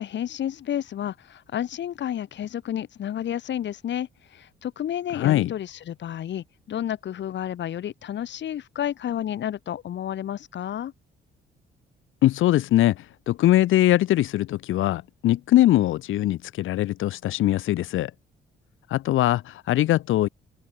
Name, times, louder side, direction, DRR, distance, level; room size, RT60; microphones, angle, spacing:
voice 1, 0.0-10.9, left 10 dB, 65° left, 2.4 m, -31 dB
voice 2, 5.1-5.5 12.2-18.1 18.9-20.3, left 14 dB, 80° left, 2.1 m, -21 dB
cardioid pair, 90°, 20 cm